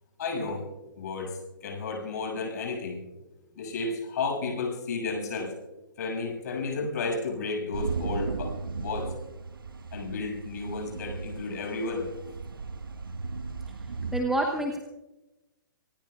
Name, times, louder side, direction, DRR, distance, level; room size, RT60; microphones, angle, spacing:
voice 1, 0.2-0.7 1.0-3.0 3.6-5.5 6.0-9.1 9.9-12.1, left 3 dB, 50° left, 1 dB, 6.9 m, -32 dB
sound 1, 7.7-14.2, right 4 dB, 75° right, 0.9 m, -36 dB
voice 2, 13.7-14.8, right 1 dB, 5° right, 3 dB, 1.0 m, -29 dB
27.0 x 19.5 x 2.4 m, 1.0 s
figure-of-eight pair, 125°, 12 cm